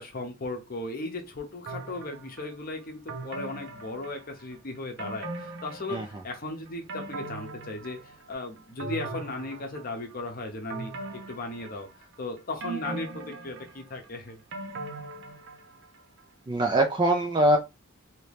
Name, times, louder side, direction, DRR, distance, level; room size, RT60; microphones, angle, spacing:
voice 1, 0.0-10.9 11.3-14.4, left 2 dB, 40° left, 0.7 m, -37 dB
sound 1, 1.7-2.5 3.1-4.5 5.0-6.3 6.7-8.3 8.8-10.1 10.7-12.1 12.6-15.9 16.2-16.3, right 2 dB, 55° right, 0.7 m, -39 dB
voice 2, 16.5-17.6, right 1 dB, 20° right, 0.3 m, -22 dB
2.9 x 2.7 x 3.3 m
head